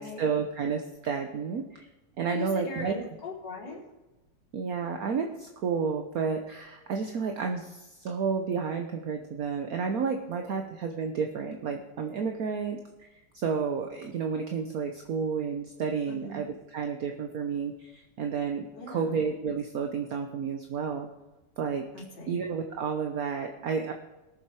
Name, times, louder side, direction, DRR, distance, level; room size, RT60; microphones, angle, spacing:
voice 1, 0.0-1.9 2.2-3.0 4.5-12.8 13.3-21.1 21.6-21.8 22.3-23.9, right 6 dB, 55° right, 4 dB, 1.0 m, -31 dB
voice 2, 2.3-3.8 16.1-16.4 18.7-19.2 21.9-22.4, left 3 dB, 50° left, -5 dB, 3.7 m, -39 dB
19.5 x 7.1 x 4.7 m, 1.0 s
omnidirectional pair, 2.4 m